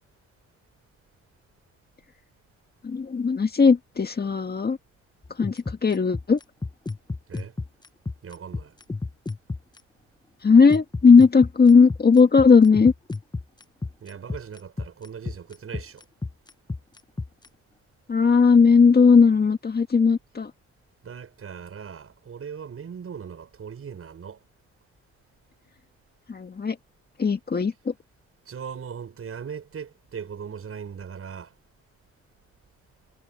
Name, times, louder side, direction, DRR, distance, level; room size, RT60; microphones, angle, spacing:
voice 1, 2.8-4.8 5.4-6.4 10.4-12.9 18.1-20.5 26.3-26.8 27.2-27.9, left 5 dB, 30° left, 1.9 m, -17 dB
sound 1, 5.2-9.8 10.7-17.5, left 3 dB, 15° left, 1.0 m, -31 dB
voice 2, 7.3-7.6 8.2-8.8 14.0-16.1 21.0-24.4 28.5-31.6, right 7 dB, 50° right, 7.4 m, -39 dB
cardioid pair, 90°, 30 cm